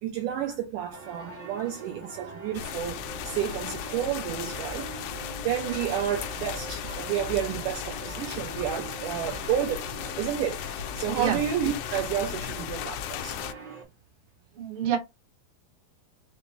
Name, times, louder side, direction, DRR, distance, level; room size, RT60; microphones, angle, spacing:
voice 1, 0.0-5.1 5.4-13.4, right 10 dB, 80° right, 2.0 m, -31 dB
sound 1, 0.9-13.8, right 4 dB, 40° right, 0.5 m, -43 dB
sound 2, 2.6-13.5, left 10 dB, 90° left, 2.4 m, -36 dB
voice 2, 14.6-15.0, right 8 dB, 60° right, 1.5 m, -27 dB
5.9 x 2.1 x 3.1 m
omnidirectional pair, 4.2 m